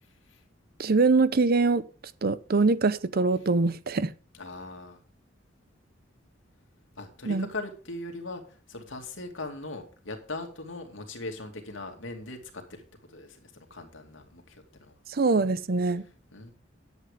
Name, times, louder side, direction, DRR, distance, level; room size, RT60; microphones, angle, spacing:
voice 1, 0.8-1.8 2.2-4.1 7.3-7.5 15.1-16.0, right 3 dB, 50° right, 0.7 m, -23 dB
voice 2, 4.3-5.0 7.0-14.9 16.3-16.5, left 2 dB, 80° left, 2.5 m, -40 dB
11.0 x 8.3 x 5.1 m
head